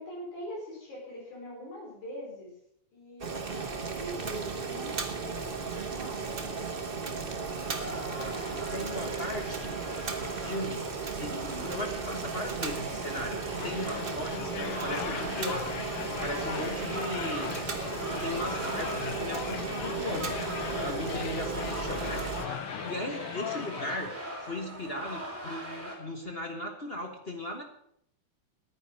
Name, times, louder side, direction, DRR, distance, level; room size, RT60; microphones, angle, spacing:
voice 1, 0.0-2.5 2.9-6.3 8.2-9.0 11.3-11.7 20.7-21.1, left 1 dB, 85° left, -3 dB, 6.1 m, -43 dB
Boiling, 3.2-22.4, right 5 dB, 80° right, 0.5 m, -35 dB
sound 1, 7.5-25.9, equal, 5° right, 3.5 m, -41 dB
voice 2, 8.7-9.7 10.2-15.8 16.1-17.5 18.1-20.4 20.7-22.2 22.8-27.6, left 1 dB, 40° left, 3 dB, 0.9 m, -37 dB
sound 2, 13.6-24.0, left 10 dB, 70° left, 1.4 m, -39 dB
10.5 x 9.7 x 7.5 m, 0.72 s
omnidirectional pair, 3.3 m